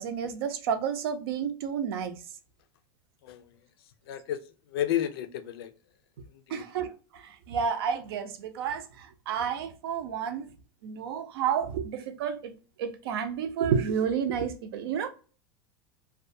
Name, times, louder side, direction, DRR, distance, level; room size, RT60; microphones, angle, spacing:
voice 1, 0.0-2.2 6.5-10.5 10.8-12.5 12.8-15.1, right 7 dB, 85° right, 0.5 m, -30 dB
voice 2, 3.2-3.5 4.1-4.4 4.7-5.7 6.3-6.7, left 11 dB, 85° left, 0.4 m, -32 dB
2.4 x 2.2 x 2.6 m
supercardioid pair, 150°, 12 cm